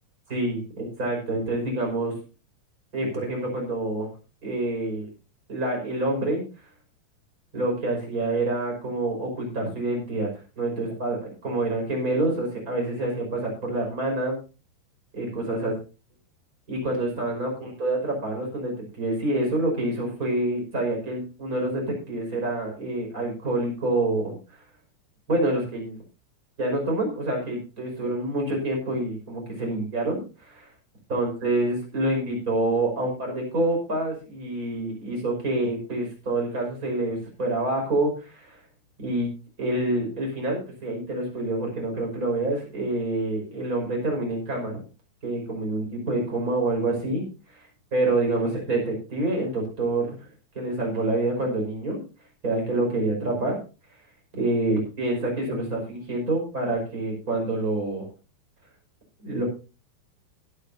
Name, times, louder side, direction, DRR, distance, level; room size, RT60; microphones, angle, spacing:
voice 1, 0.3-2.1 2.9-4.1 4.4-5.1 5.5-6.4 7.5-10.3 10.6-14.4 15.1-15.7 16.7-24.4 25.3-26.0 26.6-30.7 31.1-38.6 39.0-39.3 39.6-44.8 45.2-47.2 47.5-47.6 47.9-50.1 50.5-52.0 52.4-53.6 54.3-58.1 59.2-59.4, right 2 dB, 20° right, 0 dB, 5.6 m, -27 dB
21.0 x 9.8 x 2.8 m, 0.32 s
omnidirectional pair, 5.1 m